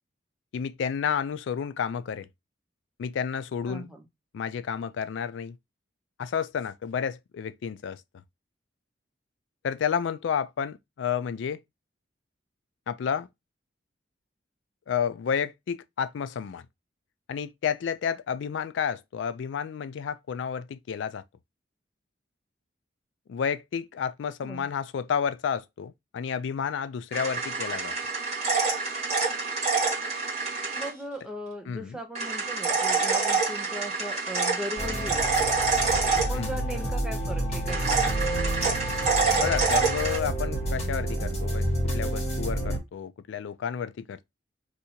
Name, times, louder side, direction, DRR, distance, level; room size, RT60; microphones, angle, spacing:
voice 1, 0.5-2.3 3.0-3.9 4.3-5.6 6.2-8.0 9.6-11.6 12.9-13.3 14.9-16.6 17.3-21.2 23.3-27.9 31.7-32.0 36.3-36.6 39.4-44.3, left 7 dB, 75° left, 0.3 m, -31 dB
voice 2, 3.7-4.0 24.4-24.7 30.7-35.6 36.2-38.4, equal, 5° right, 0.7 m, -38 dB
sound 1, 27.1-30.9 32.1-36.8 37.7-40.2, right 4 dB, 35° right, 1.4 m, -27 dB
sound 2, 34.8-42.8, right 1 dB, 35° left, 1.1 m, -29 dB
2.7 x 2.5 x 4.2 m
head